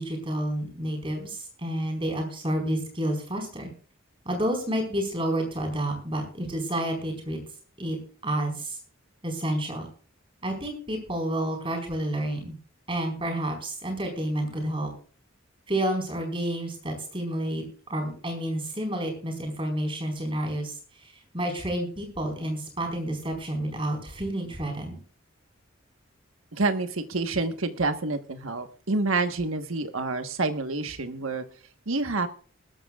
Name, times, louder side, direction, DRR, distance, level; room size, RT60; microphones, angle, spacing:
voice 1, 0.0-3.7 4.2-7.4 7.8-8.0 8.2-8.8 9.2-9.9 10.4-12.5 12.9-14.9 15.7-17.6 17.9-20.7 21.0-25.0, right 1 dB, 25° right, 3 dB, 4.7 m, -30 dB
voice 2, 26.5-31.4 31.9-32.3, right 3 dB, 70° right, 8 dB, 1.3 m, -28 dB
20.5 x 13.0 x 2.4 m, 0.42 s
head